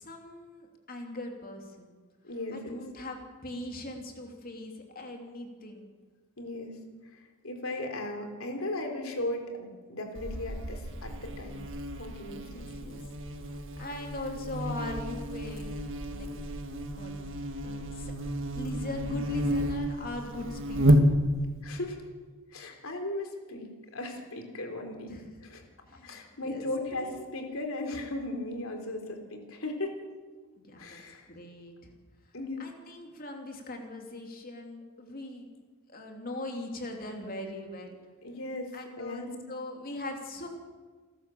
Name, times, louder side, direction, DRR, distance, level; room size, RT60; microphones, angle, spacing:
voice 1, 0.0-1.9 2.5-5.8 12.5-13.0 13.4-15.7 16.1-16.3 16.9-17.1 17.6-18.1 18.5-21.1 25.0-25.3 25.8-26.7 27.0-27.1 30.6-31.0 31.3-31.9 32.6-35.5 35.9-38.0 38.7-40.5, left 1 dB, 40° left, 2 dB, 3.1 m, -40 dB
voice 2, 2.2-2.8 6.4-6.8 7.1-11.6 12.0-12.6 21.6-22.0 22.5-25.1 25.4-25.6 26.0-30.1 30.8-31.3 32.3-32.6 38.2-39.4, left 2 dB, 65° left, 5 dB, 3.8 m, -37 dB
Buzz, 10.2-21.6, equal, 60° right, 1.7 m, -30 dB
29.0 x 13.0 x 7.8 m, 1.4 s
head